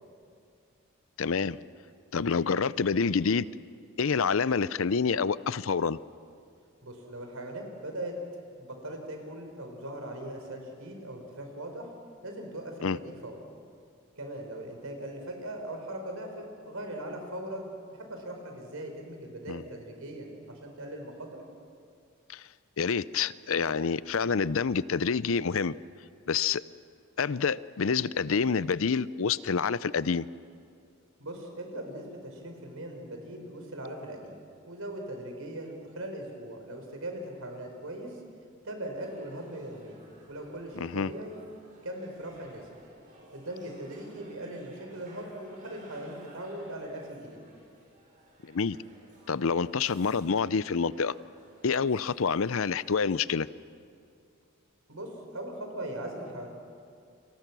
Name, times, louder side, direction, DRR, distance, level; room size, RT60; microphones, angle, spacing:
voice 1, 1.2-1.6 2.1-3.5 4.0-6.0 12.8-13.0 19.5-19.6 22.3-22.5 22.8-25.7 26.3-26.6 27.2-30.3 40.7-41.1 48.4-48.8 49.3-51.1 51.6-53.5, left 5 dB, 65° left, 17 dB, 0.6 m, -27 dB
voice 2, 6.8-8.1 8.6-11.9 12.2-13.4 14.2-21.4 31.2-34.3 34.6-38.2 38.6-40.0 40.3-41.4 41.8-42.6 43.3-47.4 54.9-56.5, right 1 dB, 75° right, 3 dB, 5.0 m, -40 dB
sound 1, 39.0-53.3, right 1 dB, 40° right, 6.7 m, -56 dB
30.0 x 25.5 x 6.2 m, 2.3 s
head